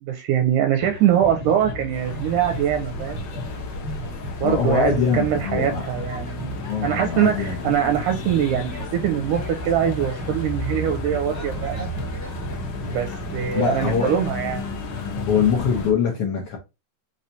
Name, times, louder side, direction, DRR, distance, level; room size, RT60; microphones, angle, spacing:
voice 1, 0.0-3.2 4.4-11.9 12.8-14.7, right 10 dB, 80° right, 1.9 m, -23 dB
sound 1, 0.8-15.9, left 1 dB, 5° left, 1.4 m, -34 dB
sound 2, 1.9-15.9, left 2 dB, 65° left, 1.8 m, -34 dB
voice 2, 4.4-5.8 6.6-7.6 13.5-14.1 15.3-16.6, left 6 dB, 85° left, 1.3 m, -23 dB
5.5 x 3.2 x 2.7 m
omnidirectional pair, 3.9 m